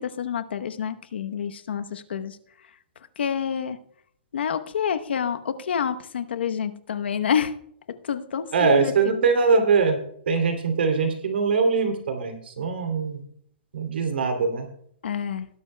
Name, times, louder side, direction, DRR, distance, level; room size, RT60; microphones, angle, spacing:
voice 1, 0.0-2.4 3.2-3.8 4.3-7.6 7.9-9.1 15.0-15.5, left 7 dB, 80° left, 10 dB, 0.9 m, -28 dB
voice 2, 8.5-10.0 10.3-13.2 13.7-14.7, right 5 dB, 75° right, 5 dB, 2.8 m, -22 dB
18.5 x 11.0 x 2.2 m, 0.66 s
hypercardioid pair, 180°, 6 cm